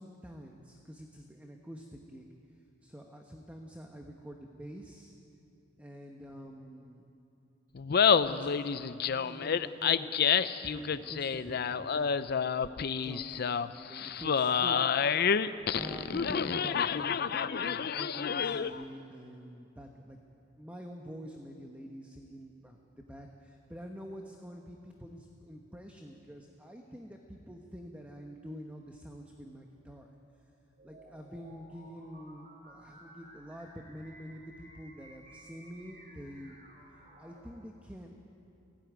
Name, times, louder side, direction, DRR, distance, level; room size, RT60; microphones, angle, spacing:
voice 1, 0.0-2.3 2.8-5.1 5.8-7.0 8.1-8.6 9.1-12.2 12.5-12.7 13.0-14.9 15.7-20.2 20.6-22.8 23.1-30.1 30.8-36.6 37.2-38.3, equal, 10° right, 2 dB, 1.1 m, -47 dB
Laughter, 7.8-18.8, left 7 dB, 55° left, 0.5 m, -29 dB
sound 1, 30.8-37.5, right 1 dB, 45° right, 4.7 m, -55 dB
18.0 x 16.0 x 9.4 m, 2.7 s
head